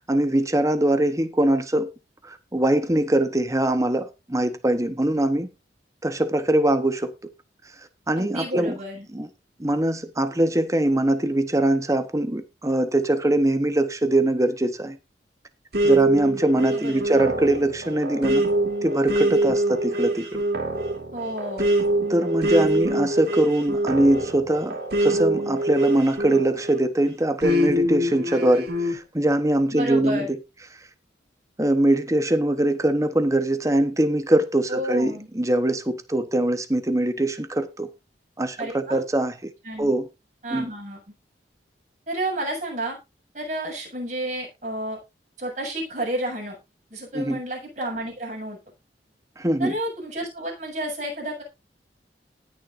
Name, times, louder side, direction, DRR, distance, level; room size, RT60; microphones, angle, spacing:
voice 1, 0.1-1.9 2.2-5.5 6.0-7.1 8.1-8.7 9.1-9.3 9.6-15.0 15.8-18.5 18.8-20.4 22.1-30.3 31.6-37.9 38.4-39.5 39.8-40.1 40.5-40.7 47.1-47.4 49.4-49.7, right 1 dB, 15° right, 1.0 m, -22 dB
voice 2, 8.2-9.1 16.6-17.0 21.1-21.7 29.7-30.3 34.7-35.3 38.6-39.0 39.6-39.9 40.4-41.0 42.1-43.0 43.3-45.0 45.4-46.6 46.9-48.6 49.6-51.4, right 1 dB, 40° right, 7.5 m, -31 dB
sound 1, 15.7-26.8 27.4-29.0, right 1 dB, 60° right, 3.1 m, -24 dB
19.5 x 6.8 x 2.6 m
head